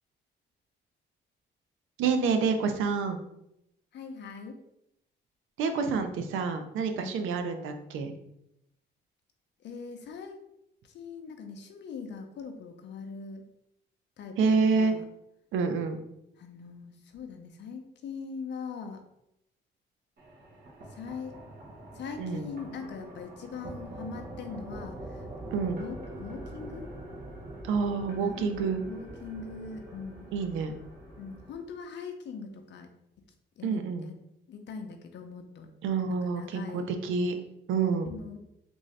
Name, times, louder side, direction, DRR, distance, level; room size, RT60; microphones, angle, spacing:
voice 1, 2.0-3.2 5.6-8.1 14.4-14.9 15.5-16.0 22.2-22.4 25.5-25.8 27.6-28.8 30.3-30.7 33.6-34.1 35.8-38.1, right 5 dB, 85° right, 7 dB, 0.6 m, -28 dB
voice 2, 3.9-4.6 7.0-7.3 9.6-10.4 10.8-13.4 14.2-14.4 14.8-15.0 16.4-19.0 20.9-21.4 21.9-25.3 25.7-26.9 28.2-30.3 31.2-32.9 33.6-34.2 34.5-35.7 36.2-36.9 38.0-38.4, left 5 dB, 65° left, 5 dB, 0.5 m, -41 dB
sound 1, 20.2-31.5, right 1 dB, 55° right, 1.2 m, -44 dB
3.6 x 2.6 x 3.2 m, 0.80 s
cardioid pair, 90°, 20 cm